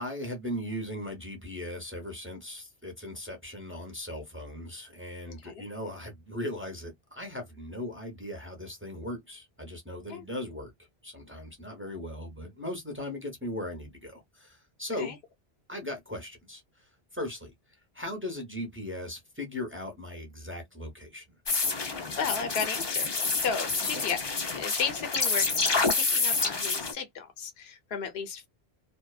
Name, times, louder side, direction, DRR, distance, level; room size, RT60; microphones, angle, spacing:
voice 1, 0.0-10.7 11.0-15.1 15.7-17.5 17.9-21.2 23.9-24.1, left 1 dB, 15° right, 0.7 m, -38 dB
voice 2, 5.3-5.6 10.1-10.2 15.0-15.2 21.8-28.5, left 6 dB, 80° left, 0.9 m, -35 dB
sound 1, 21.5-26.9, left 4 dB, 35° left, 0.5 m, -28 dB
2.7 x 2.2 x 2.2 m
omnidirectional pair, 1.0 m